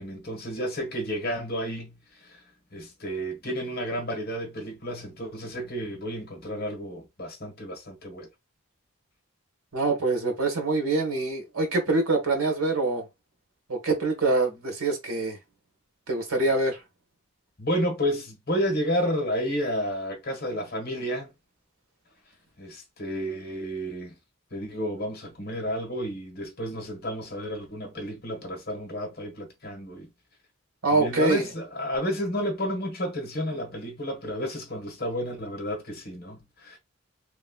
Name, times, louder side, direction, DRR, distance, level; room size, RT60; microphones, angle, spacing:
voice 1, 0.0-1.9 2.2-2.4 2.7-8.3 17.6-21.3 22.6-24.2 24.5-30.1 30.9-36.8, equal, 45° left, 1.2 m, -31 dB
voice 2, 9.7-13.0 13.7-15.4 16.1-16.8 30.8-31.5, right 2 dB, 80° right, 1.4 m, -25 dB
3.2 x 3.0 x 2.2 m
head